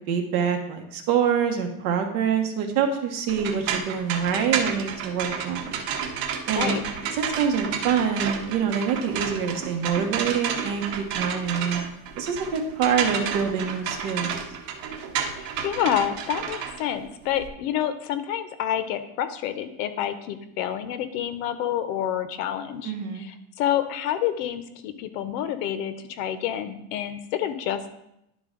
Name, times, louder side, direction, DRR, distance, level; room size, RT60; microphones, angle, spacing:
voice 1, 0.1-5.8 6.5-6.8 7.2-11.8 12.2-14.4 22.8-23.3, right 7 dB, 55° right, 4 dB, 1.2 m, -26 dB
sound 1, 3.3-17.5, right 7 dB, 80° right, 1.0 m, -31 dB
voice 2, 15.4-27.9, left 10 dB, 75° left, 10 dB, 0.9 m, -28 dB
11.0 x 3.9 x 3.8 m, 0.82 s
cardioid pair, 170°, 49 cm